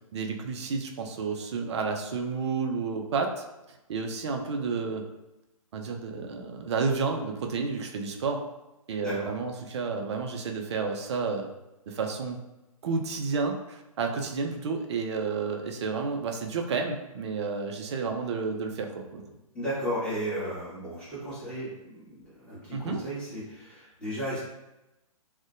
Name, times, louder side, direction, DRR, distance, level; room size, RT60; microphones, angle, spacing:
voice 1, 0.1-5.0 5.7-8.4 8.9-11.5 11.9-12.4 12.8-19.2 22.7-23.0, right 4 dB, 50° right, 4 dB, 0.4 m, -31 dB
voice 2, 9.0-9.3 19.5-24.4, equal, 5° left, -12 dB, 1.2 m, -34 dB
2.5 x 2.1 x 2.5 m, 0.96 s
figure-of-eight pair, 130°, 18 cm